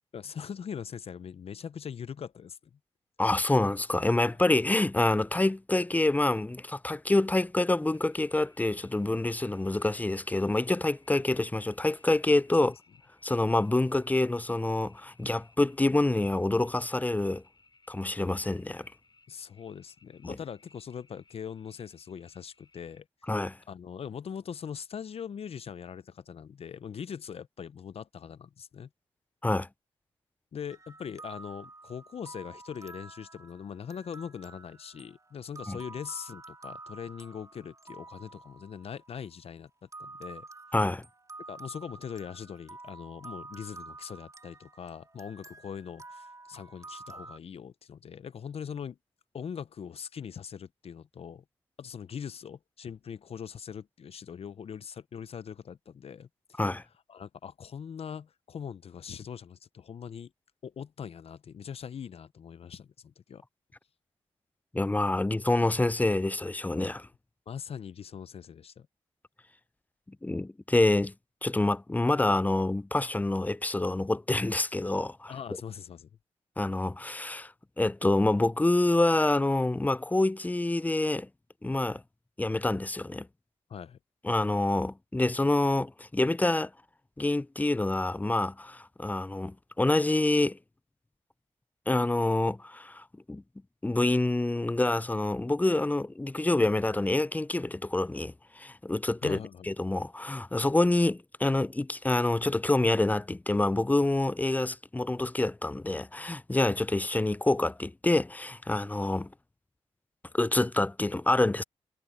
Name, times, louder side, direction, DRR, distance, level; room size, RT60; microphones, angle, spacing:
voice 1, 0.1-2.6 12.6-12.7 19.3-23.1 23.7-28.9 30.5-40.5 41.5-49.0 49.3-51.4 51.8-56.6 57.1-60.3 60.6-63.4 67.5-68.9 75.3-76.1 83.7-84.0 99.2-99.7, left 7 dB, 60° left, 0.7 m, -41 dB
voice 2, 3.2-12.8 13.2-17.4 17.9-18.9 20.2-20.4 23.3-23.6 29.4-29.7 35.7-35.8 40.7-41.0 56.6-56.8 64.7-67.1 70.1-71.1 71.4-75.3 76.6-81.3 81.6-82.0 82.4-83.3 84.2-86.7 87.2-90.6 91.9-93.4 93.8-99.4 99.6-109.3 110.3-111.6, left 2 dB, 15° left, 0.5 m, -27 dB
sound 1, 7.8-23.0, left 4 dB, 40° left, 7.8 m, -64 dB
sound 2, 30.7-39.3 39.9-47.4, right 3 dB, 30° right, 3.7 m, -49 dB
supercardioid pair, 50°, 11 cm